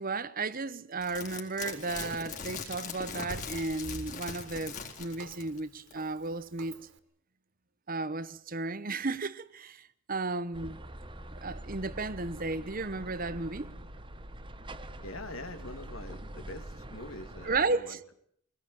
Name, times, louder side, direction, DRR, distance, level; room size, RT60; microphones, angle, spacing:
voice 1, 0.0-6.8 7.9-10.8 11.4-13.7 17.4-18.0, right 3 dB, 40° right, 1.1 m, -34 dB
sound 1, 1.0-5.6 5.9-6.0, left 5 dB, 35° left, 4.2 m, -41 dB
Walk footsteps, 1.6-7.0, right 3 dB, 55° right, 2.6 m, -53 dB
sound 2, 10.5-17.6, right 1 dB, 20° right, 1.4 m, -44 dB
voice 2, 15.0-18.0, left 2 dB, 65° left, 2.7 m, -44 dB
23.5 x 19.5 x 9.2 m
head